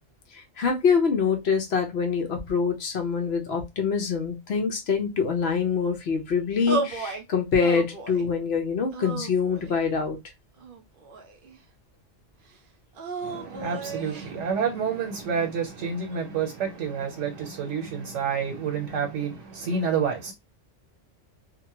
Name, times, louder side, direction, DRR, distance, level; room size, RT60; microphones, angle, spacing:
voice 1, 0.3-10.2, left 5 dB, 65° left, 1.0 m, -25 dB
sound 1, 6.7-7.2 7.6-8.3 8.9-9.8 10.6-11.6 12.9-14.3, right 3 dB, 55° right, 0.7 m, -34 dB
voice 2, 13.2-20.3, right 6 dB, 85° right, 1.1 m, -29 dB
2.8 x 2.2 x 2.9 m
omnidirectional pair, 1.2 m